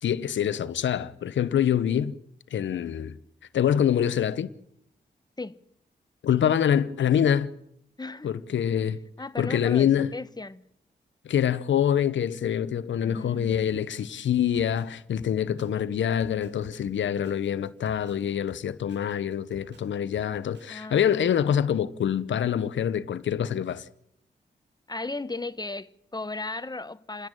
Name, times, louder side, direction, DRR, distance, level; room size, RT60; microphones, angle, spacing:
voice 1, 0.0-2.2 2.5-3.2 3.5-4.5 6.2-7.6 8.2-9.0 9.4-10.1 11.2-23.8, left 9 dB, 80° left, 0.9 m, -25 dB
voice 2, 8.0-8.3 9.2-10.6 13.0-13.8 20.7-21.3 24.9-27.3, left 3 dB, 20° left, 1.1 m, -36 dB
Drum kit, 13.5-20.8, right 2 dB, 65° right, 3.1 m, -53 dB
28.0 x 10.5 x 9.0 m
supercardioid pair, 45°, 19 cm